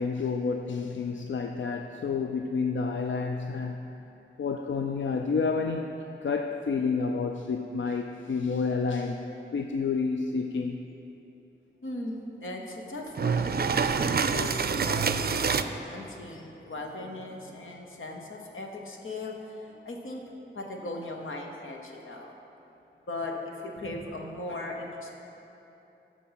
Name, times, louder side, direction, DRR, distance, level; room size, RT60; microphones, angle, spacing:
voice 1, 0.0-3.8 4.4-9.3 9.5-10.8, left 4 dB, 70° left, 4 dB, 0.4 m, -29 dB
voice 2, 11.8-13.9 14.3-20.2 20.5-22.3 23.1-25.1, left 2 dB, 90° left, 1 dB, 1.0 m, -38 dB
sound 1, 13.2-15.6, right 5 dB, 50° right, 0.4 m, -26 dB
13.0 x 4.5 x 5.6 m, 3.0 s
cardioid pair, 45°, 20 cm